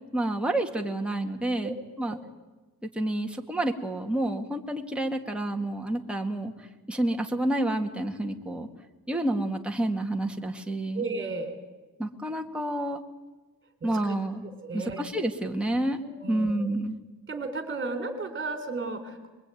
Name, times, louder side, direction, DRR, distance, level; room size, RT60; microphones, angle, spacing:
voice 1, 0.1-2.2 2.9-6.5 6.9-8.7 9.1-11.0 12.0-13.0 13.8-14.4 14.7-16.0 16.3-17.0, right 1 dB, 5° right, 2 dB, 1.9 m, -29 dB
voice 2, 10.9-11.6 13.8-14.1 14.6-15.0 16.0-16.7 17.3-19.3, right 3 dB, 30° right, 7 dB, 3.8 m, -34 dB
24.5 x 22.5 x 9.2 m, 1.2 s
cardioid pair, 125°, 37 cm